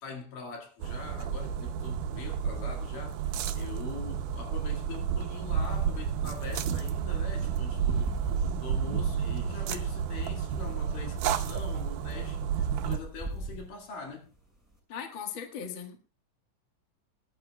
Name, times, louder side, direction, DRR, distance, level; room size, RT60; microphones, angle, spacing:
voice 1, 0.0-8.3 8.6-14.3, left 4 dB, 70° left, 3.6 m, -43 dB
sound 1, 0.8-13.0, right 7 dB, 75° right, 2.2 m, -31 dB
sound 2, 5.3-14.8, right 2 dB, 5° right, 5.6 m, -43 dB
voice 2, 14.9-16.0, left 7 dB, 45° left, 1.7 m, -38 dB
24.0 x 11.5 x 2.3 m
omnidirectional pair, 4.1 m